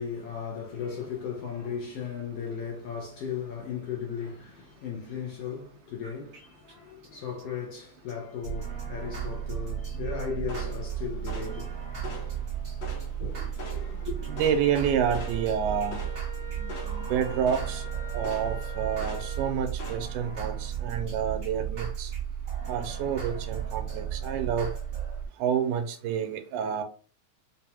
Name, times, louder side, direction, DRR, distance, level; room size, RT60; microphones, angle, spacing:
voice 1, 0.0-12.1 13.2-14.3, left 7 dB, 80° left, 1.4 m, -36 dB
sound 1, 6.0-6.4 6.7-6.8 7.0-7.1 7.4-7.5 7.7-7.8 8.1-8.2 8.4-25.3, right 9 dB, 45° right, 0.9 m, -34 dB
sound 2, 10.5-20.0, left 2 dB, 60° left, 1.2 m, -45 dB
voice 2, 14.3-16.0 16.6-17.8 18.1-22.1 22.7-24.7 25.4-26.8, right 8 dB, 80° right, 2.1 m, -29 dB
Wind instrument woodwind instrument, 14.7-19.6, left 2 dB, 20° right, 1.0 m, -45 dB
5.4 x 2.3 x 2.8 m
omnidirectional pair, 3.7 m